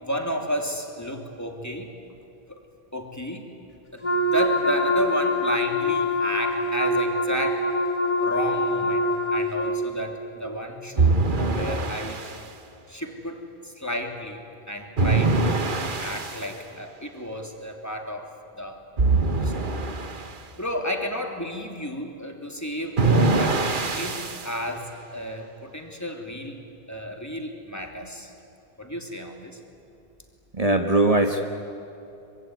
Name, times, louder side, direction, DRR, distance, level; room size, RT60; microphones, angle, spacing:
voice 1, 0.0-1.9 2.5-2.6 2.9-3.5 3.9-7.7 8.2-12.3 12.9-18.3 18.5-18.8 19.3-19.5 20.6-23.6 23.9-26.6 26.9-28.3 28.8-29.6, equal, 15° left, 3 dB, 2.9 m, -32 dB
Wind instrument woodwind instrument, 4.0-9.8, left 1 dB, 30° left, 4.2 m, -24 dB
sound 1, 11.0-12.4 15.0-16.5 19.0-20.3 23.0-24.5, right 3 dB, 55° right, 1.5 m, -23 dB
voice 2, 30.5-31.4, right 2 dB, 35° right, 4 dB, 1.6 m, -20 dB
25.5 x 24.5 x 9.5 m, 2.8 s
omnidirectional pair, 1.1 m